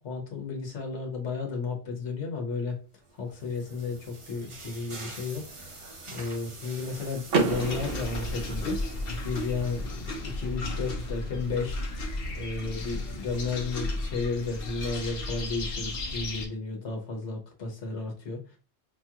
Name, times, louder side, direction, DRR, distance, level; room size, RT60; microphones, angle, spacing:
voice 1, 0.0-2.8 3.2-5.8 6.1-8.8 9.2-11.8 12.3-18.6, left 4 dB, 90° left, 2 dB, 1.3 m, -33 dB
sound 1, 3.0-10.6, right 2 dB, 35° right, 0.7 m, -46 dB
Car / Door, 7.3-9.2, right 4 dB, 60° right, 0.9 m, -30 dB
sound 2, 7.5-16.5, left 2 dB, 60° left, 1.0 m, -34 dB
5.2 x 2.4 x 2.8 m, 0.34 s
omnidirectional pair, 1.1 m